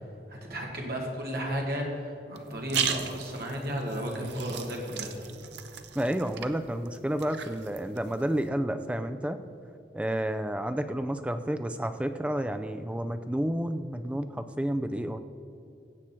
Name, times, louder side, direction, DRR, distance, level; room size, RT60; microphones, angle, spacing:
voice 1, 0.3-5.1, equal, 55° right, -1 dB, 2.1 m, -33 dB
sound 1, 2.3-8.5, right 8 dB, 80° right, 0.7 m, -37 dB
voice 2, 5.9-9.4 9.9-15.2, right 1 dB, 5° right, 9 dB, 0.4 m, -30 dB
16.0 x 7.5 x 4.4 m, 2.7 s
head